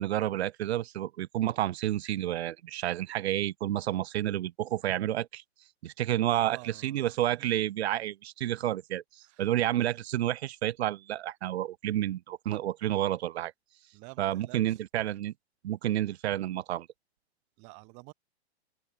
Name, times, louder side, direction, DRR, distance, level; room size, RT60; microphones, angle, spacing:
voice 1, 0.0-5.4 5.8-13.5 14.2-15.3 15.6-16.9, right 13 dB, 70° right, 0.6 m, -30 dB
voice 2, 6.2-7.5 9.2-9.5 13.9-14.8 17.6-18.1, right 35 dB, 20° right, 2.1 m, -50 dB
open air
hypercardioid pair, 180°, 33 cm